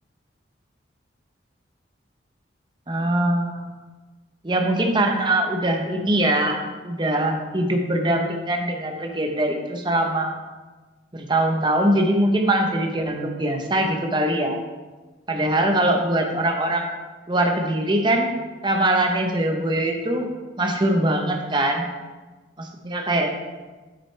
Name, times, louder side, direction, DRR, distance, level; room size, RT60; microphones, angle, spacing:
voice 1, 2.9-3.7 4.4-10.4 11.1-14.6 15.3-16.9 17.3-18.3 18.6-20.3 20.6-21.9 22.6-23.3, right 1 dB, 25° right, 3 dB, 0.8 m, -22 dB
8.7 x 6.6 x 3.2 m, 1.3 s
head